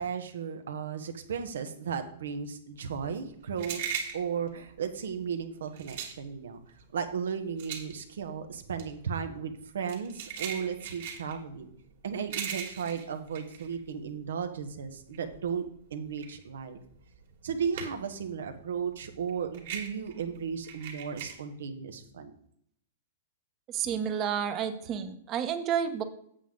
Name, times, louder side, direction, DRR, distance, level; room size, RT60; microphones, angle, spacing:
voice 1, 0.0-3.8 4.1-6.6 6.9-11.7 12.0-15.6 15.9-16.8 17.4-22.3, right 6 dB, 80° right, 8 dB, 1.2 m, -35 dB
sound 1, 2.8-14.4 14.8-18.2 18.5-21.3, right 7 dB, 65° right, 2.4 m, -40 dB
voice 2, 23.7-26.0, right 8 dB, 30° right, 9 dB, 1.0 m, -30 dB
8.3 x 7.5 x 3.8 m, 0.69 s
hypercardioid pair, 130°, 0 cm